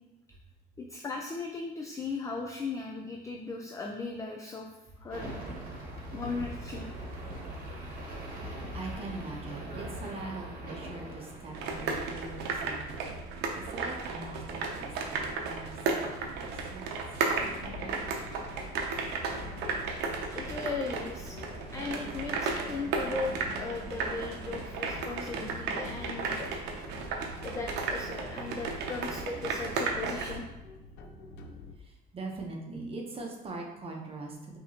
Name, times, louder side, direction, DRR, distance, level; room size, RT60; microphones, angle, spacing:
voice 1, 0.8-4.7 5.0-5.3 6.1-6.9 20.0-21.4 21.7-26.5 27.4-30.4, left 3 dB, 20° left, 2 dB, 0.4 m, -37 dB
sound 1, 5.1-12.6, right 1 dB, 55° right, 1.1 m, -41 dB
voice 2, 5.7-6.1 7.2-13.1 13.5-17.0 31.8-34.6, right 3 dB, 35° right, 0 dB, 0.8 m, -43 dB
sound 2, 11.5-30.4, right 4 dB, 85° right, 0.6 m, -34 dB
sound 3, 17.3-31.7, left 3 dB, 85° left, 0.5 m, -47 dB
5.3 x 2.9 x 2.8 m, 0.97 s
cardioid pair, 110°, 17 cm